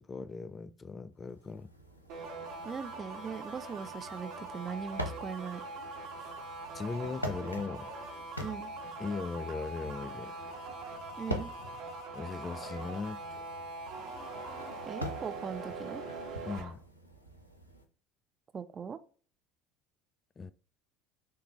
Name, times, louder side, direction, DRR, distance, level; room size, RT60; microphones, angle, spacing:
voice 1, 0.0-1.7 6.2-6.3 6.7-7.9 9.0-10.3 12.1-13.2 16.5-16.8 20.4-20.5, left 4 dB, 25° left, 0.3 m, -38 dB
sound 1, 1.3-17.8, equal, 90° left, 0.6 m, -45 dB
sound 2, 2.1-16.7, right 3 dB, 55° right, 1.3 m, -42 dB
voice 2, 2.6-5.6 8.4-8.7 11.2-11.5 14.9-16.0 18.5-19.0, right 6 dB, 30° right, 0.5 m, -40 dB
sound 3, 7.6-8.3 9.0-9.3 10.1-10.8 11.2-11.8 12.3-13.1 13.8-14.9, left 4 dB, 60° left, 1.1 m, -55 dB
6.5 x 2.4 x 3.0 m
figure-of-eight pair, 65°, 0 cm